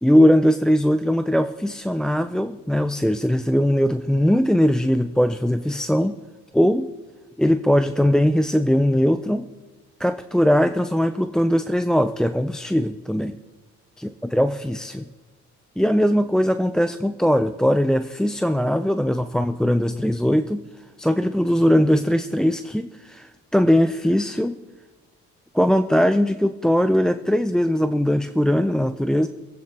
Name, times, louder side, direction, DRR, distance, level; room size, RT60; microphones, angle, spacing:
voice 1, 0.0-6.2 6.5-6.9 7.4-9.5 10.0-13.4 14.0-15.1 15.8-20.6 21.0-24.6 25.5-29.3, equal, ahead, 8 dB, 0.4 m, -20 dB
25.0 x 8.7 x 2.8 m, 1.2 s
cardioid pair, 90°, 30 cm